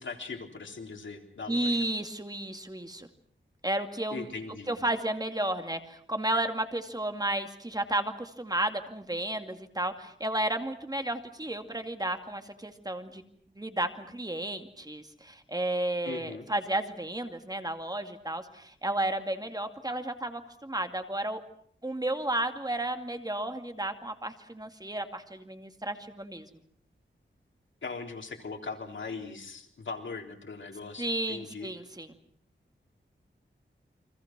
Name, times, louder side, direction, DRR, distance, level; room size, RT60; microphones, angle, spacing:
voice 1, 0.0-1.8 4.1-4.8 16.0-16.5 27.8-31.7, left 4 dB, 75° left, 3 dB, 3.8 m, -40 dB
voice 2, 1.5-3.1 3.6-4.3 4.7-13.2 13.6-21.4 21.8-26.5 31.0-32.1, right 1 dB, 20° right, 6 dB, 2.3 m, -32 dB
29.5 x 25.0 x 6.1 m, 0.63 s
wide cardioid pair, 90°, 20 cm